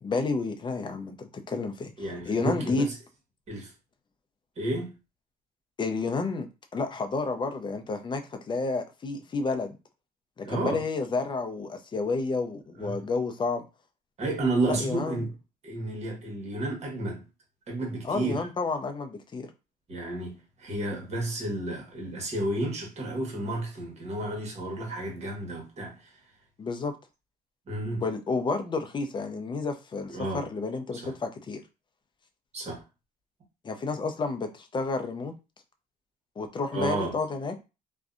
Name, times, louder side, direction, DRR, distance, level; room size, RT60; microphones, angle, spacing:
voice 1, 0.0-1.9 2.3-2.9 5.8-6.5 6.7-9.8 10.4-13.6 14.7-15.2 18.0-19.5 26.6-26.9 28.0-31.6 33.6-35.3 36.4-37.5, left 3 dB, 30° left, 0.5 m, -30 dB
voice 2, 2.0-3.0 3.5-3.7 4.6-4.9 10.4-10.8 12.8-13.0 14.2-15.3 15.6-17.2 17.7-18.5 19.9-26.2 27.7-28.0 30.1-30.5 30.9-31.1 32.5-32.8 36.7-37.2, right 2 dB, 40° right, 1.1 m, -31 dB
2.6 x 2.1 x 2.4 m
cardioid pair, 110°, 17 cm